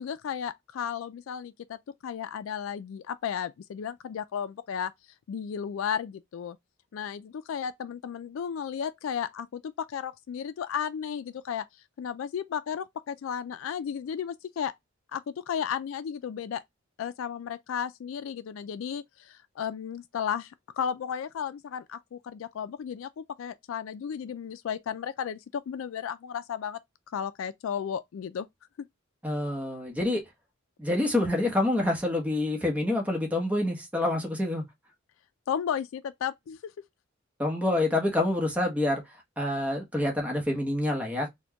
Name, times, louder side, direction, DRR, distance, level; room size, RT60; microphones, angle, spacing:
voice 1, 0.0-4.9 5.3-6.6 6.9-11.6 12.0-14.7 15.1-16.6 17.0-26.8 27.1-28.5 35.5-36.6, left 8 dB, 90° left, 0.3 m, -34 dB
voice 2, 29.2-30.2 30.8-34.6 37.4-39.0 39.4-41.3, left 1 dB, 5° right, 1.0 m, -27 dB
4.2 x 2.2 x 2.8 m
head